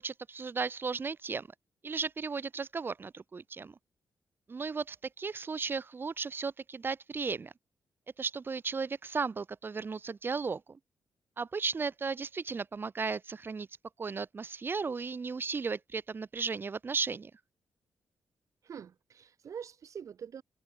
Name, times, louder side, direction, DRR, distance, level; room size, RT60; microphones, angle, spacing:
voice 1, 0.0-1.5 1.8-3.7 4.5-7.5 8.2-10.8 11.4-13.7 14.0-17.3, right 4 dB, 35° right, 4.2 m, -35 dB
voice 2, 18.6-20.4, right 7 dB, 60° right, 3.6 m, -44 dB
cardioid pair, 110°, 6 cm